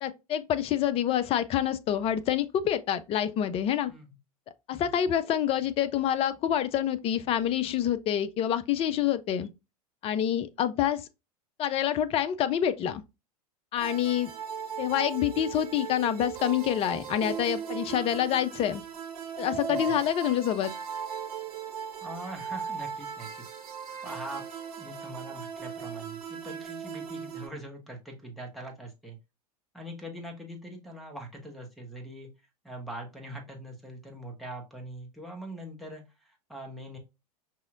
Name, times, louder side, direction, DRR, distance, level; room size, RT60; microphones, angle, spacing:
voice 1, 0.0-3.9 4.7-9.5 10.0-11.0 11.6-13.0 13.7-14.3 14.8-18.8 19.4-20.7, left 10 dB, 30° left, 0.5 m, -27 dB
sound 1, 13.8-27.5, right 7 dB, 65° right, 1.4 m, -38 dB
voice 2, 22.0-23.4 24.0-24.4 24.8-29.2 29.7-32.3 32.6-37.0, right 1 dB, ahead, 1.3 m, -42 dB
5.5 x 3.0 x 2.5 m
hypercardioid pair, 95°, 20 cm